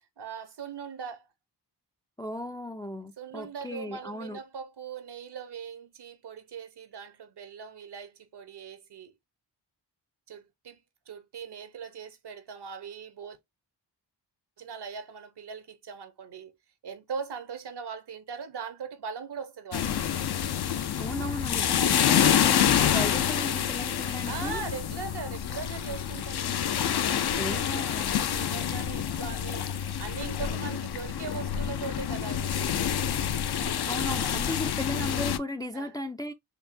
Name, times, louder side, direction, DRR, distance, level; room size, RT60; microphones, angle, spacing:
voice 1, 0.2-1.3 3.2-9.1 10.3-10.8 11.1-13.4 14.6-16.6 16.8-19.9 24.2-33.1 35.7-36.0, right 6 dB, 65° right, 0.9 m, -40 dB
voice 2, 2.2-4.4 21.0-24.6 27.4-28.2 33.9-36.3, left 1 dB, 10° left, 0.4 m, -35 dB
sound 1, 19.7-35.4, left 9 dB, 60° left, 0.6 m, -27 dB
4.4 x 2.7 x 2.6 m
cardioid pair, 60°, 44 cm